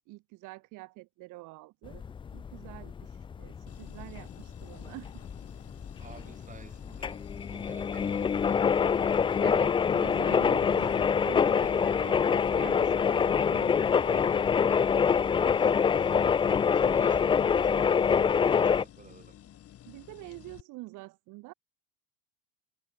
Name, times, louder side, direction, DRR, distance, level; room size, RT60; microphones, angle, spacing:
voice 1, 0.0-2.0 2.3-5.2 9.4-11.0 11.2-13.8 19.9-21.5, right 22 dB, 45° right, 1.6 m, -45 dB
sound 1, 1.9-18.8, left 6 dB, 10° left, 0.5 m, -26 dB
sound 2, 3.7-20.6, left 11 dB, 35° left, 2.6 m, -51 dB
voice 2, 6.0-9.2 11.5-12.0 14.0-16.2 16.7-19.4, right 5 dB, 20° right, 3.8 m, -52 dB
hypercardioid pair, 85°, 42 cm